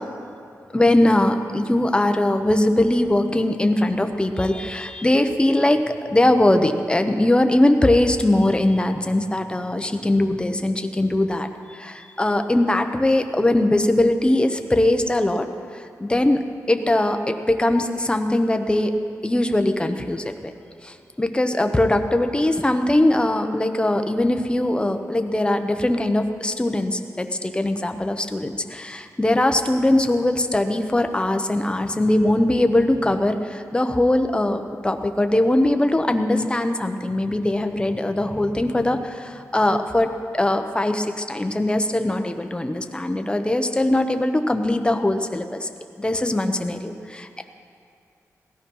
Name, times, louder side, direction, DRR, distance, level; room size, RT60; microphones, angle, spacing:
voice 1, 0.7-15.5 15.7-16.4 16.7-18.9 19.2-20.5 20.8-45.7 46.0-47.4, left 1 dB, 15° left, 6 dB, 1.0 m, -21 dB
18.0 x 13.5 x 5.6 m, 2.4 s
wide cardioid pair, 110°, 6 cm